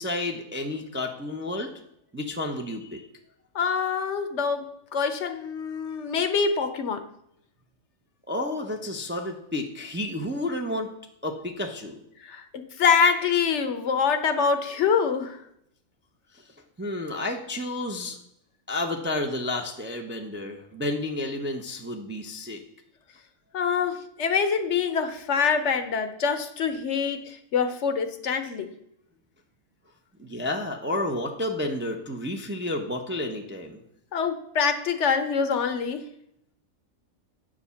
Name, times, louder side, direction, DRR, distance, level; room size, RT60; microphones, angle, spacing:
voice 1, 0.0-1.7 2.1-3.1 8.3-10.9 11.2-12.0 16.3-16.5 16.8-18.2 18.7-22.6 30.2-33.8, left 1 dB, 15° right, 0.5 m, -31 dB
voice 2, 3.5-4.7 4.9-7.0 12.3-15.4 23.5-28.7 34.1-36.1, left 6 dB, 65° left, 1.0 m, -25 dB
8.2 x 5.0 x 6.9 m
omnidirectional pair, 1.4 m